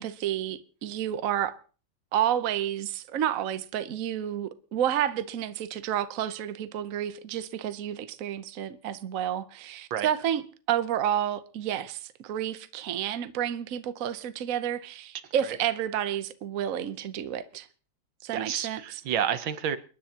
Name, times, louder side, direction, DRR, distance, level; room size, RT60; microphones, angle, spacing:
voice 1, 0.0-1.6 2.1-10.4 10.7-17.7 18.2-18.8, right 10 dB, 55° right, 1.1 m, -30 dB
voice 2, 18.3-19.8, right 9 dB, 80° right, 1.7 m, -30 dB
29.0 x 10.5 x 2.9 m
omnidirectional pair, 2.2 m